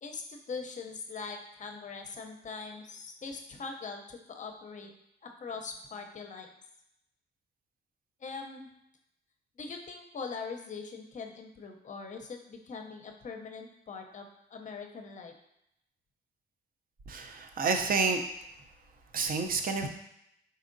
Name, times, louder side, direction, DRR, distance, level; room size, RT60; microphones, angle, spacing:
voice 1, 0.0-4.9 5.2-6.5 8.2-8.7 9.6-15.3, left 4 dB, 40° left, 4 dB, 0.6 m, -42 dB
voice 2, 17.1-18.2 19.1-19.9, right 4 dB, 45° right, 5 dB, 0.6 m, -29 dB
4.1 x 3.5 x 2.6 m, 0.80 s
cardioid pair, 90°, 20 cm